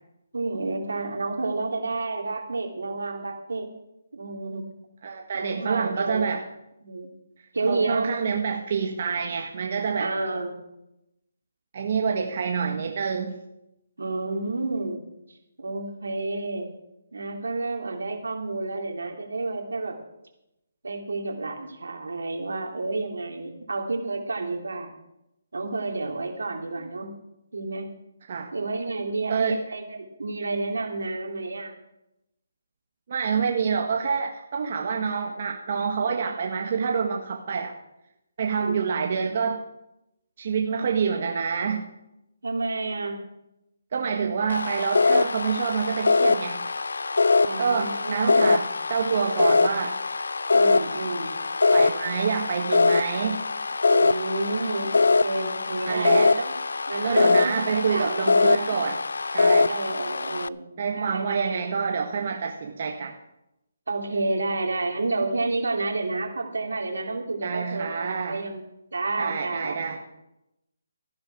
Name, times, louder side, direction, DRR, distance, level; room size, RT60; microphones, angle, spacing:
voice 1, 0.3-3.7 4.1-4.6 5.3-6.3 6.8-7.1 7.5-8.1 10.0-10.6 14.0-15.0 15.6-16.7 17.1-19.9 20.8-24.9 25.5-27.1 27.5-27.9 28.5-31.7 33.4-33.5 38.5-38.8 42.4-43.2 47.4-48.4 50.5-51.3 53.9-56.5 56.9-58.7 59.7-60.6 60.9-61.8 63.9-68.6 68.9-69.9, right 3 dB, 85° right, 2 dB, 2.9 m, -30 dB
voice 2, 5.0-6.4 7.7-10.1 11.7-13.4 28.3-28.5 29.3-29.6 33.1-37.7 38.4-39.6 40.4-41.8 43.9-46.6 47.6-50.0 51.7-53.4 55.9-56.3 57.0-59.0 59.3-59.7 60.8-63.1 67.4-68.4 69.2-70.0, right 6 dB, 50° right, 2 dB, 1.4 m, -27 dB
sound 1, 44.5-60.5, left 3 dB, 85° left, 0.4 m, -23 dB
14.0 x 11.5 x 4.7 m, 0.89 s
hypercardioid pair, 160°, 0 cm